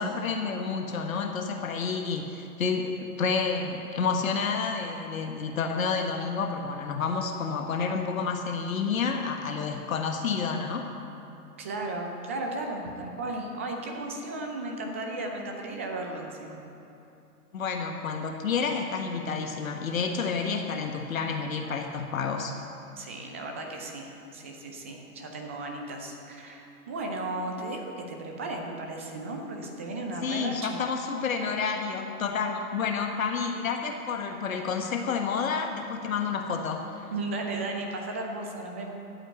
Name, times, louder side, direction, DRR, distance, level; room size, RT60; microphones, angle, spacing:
voice 1, 0.0-10.9 17.5-22.6 30.2-37.0, left 5 dB, 55° left, 4 dB, 1.4 m, -29 dB
voice 2, 11.6-16.6 23.0-30.8 37.1-38.9, right 2 dB, 10° right, 2 dB, 0.4 m, -35 dB
13.5 x 8.9 x 8.2 m, 2.8 s
figure-of-eight pair, 115°, 47 cm